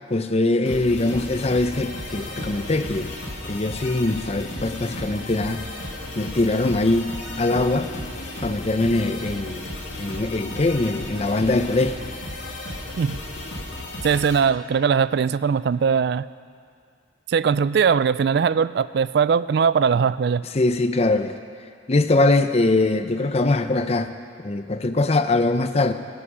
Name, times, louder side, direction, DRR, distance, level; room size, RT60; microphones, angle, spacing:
voice 1, 0.1-3.1 3.4-5.7 6.2-7.9 8.4-9.7 10.0-12.0 20.5-21.3 21.9-24.1 24.4-25.9, left 2 dB, 35° left, 9 dB, 0.6 m, -22 dB
sound 1, 0.7-14.4, left 1 dB, 85° left, 2.3 m, -34 dB
voice 2, 14.0-16.2 17.3-20.4, right 6 dB, 60° right, 17 dB, 0.3 m, -20 dB
23.0 x 9.8 x 5.0 m, 2.2 s
head